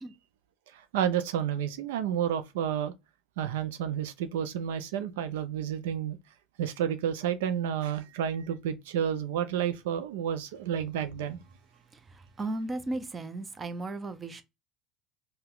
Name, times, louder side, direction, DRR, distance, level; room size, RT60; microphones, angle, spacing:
voice 1, 0.9-2.9 3.4-6.2 6.6-11.4, right 9 dB, 85° right, 0.4 m, -30 dB
voice 2, 12.4-14.4, right 2 dB, 25° right, 0.6 m, -35 dB
2.8 x 2.2 x 3.6 m
supercardioid pair, 95°, 0 cm